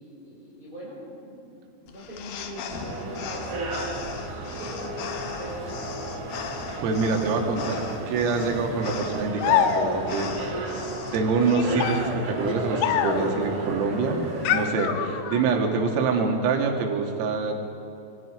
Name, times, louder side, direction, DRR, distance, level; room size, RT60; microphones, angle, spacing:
voice 1, 0.0-1.6 1.8-4.0 4.6-6.1, equal, 10° right, -7 dB, 4.6 m, -41 dB
sound 1, 1.9-11.2, left 6 dB, 70° left, 2.2 m, -38 dB
sound 2, 2.7-14.7, right 2 dB, 40° right, 3.9 m, -34 dB
voice 2, 6.8-10.8 11.1-17.5, right 4 dB, 80° right, 2 dB, 4.7 m, -26 dB
sound 3, 9.4-10.2 11.4-13.4 14.5-15.6, left 9 dB, 90° left, 3.8 m, -26 dB
25.0 x 23.0 x 5.0 m, 2.7 s
omnidirectional pair, 5.9 m